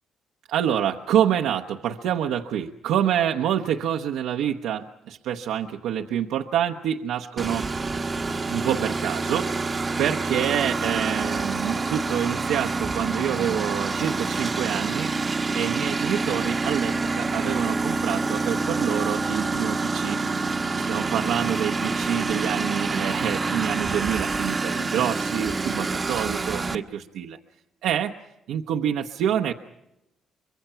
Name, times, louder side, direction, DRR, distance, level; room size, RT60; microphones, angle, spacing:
voice 1, 0.5-7.7 8.5-15.1 15.5-20.2 20.9-27.4 27.8-28.1 28.5-29.5, right 9 dB, 90° right, 3 dB, 0.9 m, -27 dB
Engine, 7.4-26.7, right 3 dB, 30° right, 1.1 m, -27 dB
24.5 x 22.5 x 5.8 m, 0.88 s
cardioid pair, 90°, 0 cm